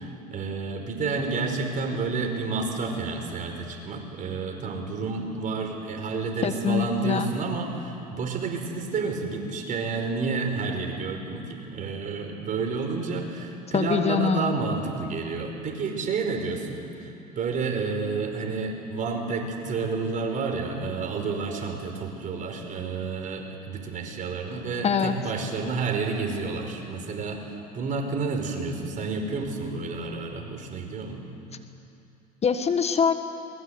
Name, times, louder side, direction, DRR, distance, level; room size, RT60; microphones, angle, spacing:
voice 1, 0.0-27.4 27.7-31.3, right 4 dB, 40° right, 3 dB, 4.9 m, -30 dB
voice 2, 6.4-7.3 13.7-14.6 24.8-25.1 32.4-33.1, left 6 dB, 30° left, 8 dB, 1.5 m, -24 dB
23.0 x 21.0 x 8.1 m, 2.7 s
hypercardioid pair, 80°, 20 cm